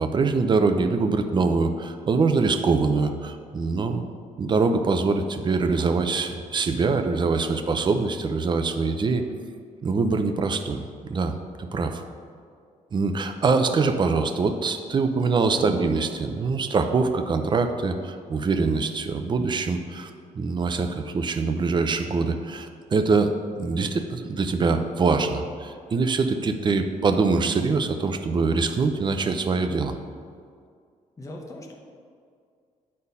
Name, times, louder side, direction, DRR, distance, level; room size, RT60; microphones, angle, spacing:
voice 1, 0.0-4.0 4.4-9.2 9.8-12.0 12.9-20.1 20.3-29.9, right 4 dB, 35° right, 7 dB, 0.6 m, -24 dB
voice 2, 31.2-31.7, left 1 dB, 25° left, 0 dB, 1.0 m, -39 dB
9.6 x 4.4 x 5.4 m, 2.2 s
cardioid pair, 145°, 14 cm